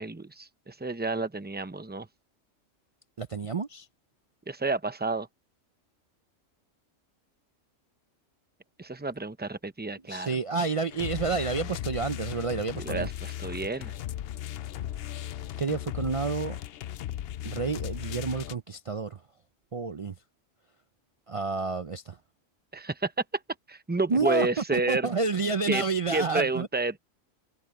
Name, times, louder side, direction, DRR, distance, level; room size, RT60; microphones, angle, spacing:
voice 1, 0.0-2.1 4.5-5.3 8.8-10.3 12.7-13.9 22.7-23.1 23.7-25.1 25.7-25.8 26.1-27.0, right 3 dB, 10° right, 0.6 m, -30 dB
voice 2, 3.2-3.9 10.1-13.1 15.6-16.6 17.4-19.2 19.7-20.1 21.3-22.2 24.1-24.5 24.7-26.7, right 4 dB, 50° right, 0.4 m, -29 dB
sound 1, 10.9-18.6, left 12 dB, 65° left, 0.7 m, -36 dB
omnidirectional pair, 1.3 m